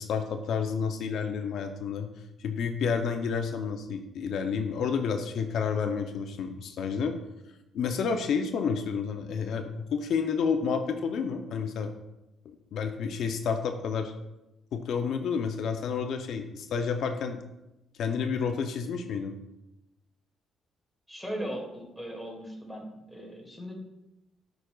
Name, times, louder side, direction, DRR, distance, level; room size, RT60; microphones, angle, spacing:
voice 1, 0.0-2.1 2.4-7.1 7.7-11.9 12.7-14.1 14.7-17.4 18.0-19.4, left 6 dB, 75° left, 5 dB, 0.5 m, -30 dB
voice 2, 21.1-23.7, equal, 5° right, -1 dB, 2.1 m, -38 dB
9.1 x 5.1 x 2.3 m, 0.94 s
cardioid pair, 90°, 0 cm